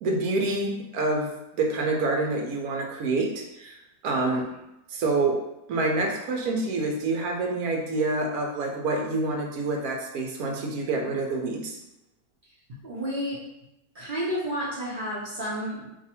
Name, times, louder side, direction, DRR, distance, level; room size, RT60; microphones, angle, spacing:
voice 1, 0.0-3.8 4.0-4.4 4.9-5.4 5.7-11.7, right 2 dB, 70° right, 2 dB, 1.1 m, -27 dB
voice 2, 12.8-13.4 13.9-15.9, equal, 45° right, -7 dB, 0.6 m, -31 dB
2.7 x 2.5 x 4.2 m, 0.87 s
omnidirectional pair, 1.8 m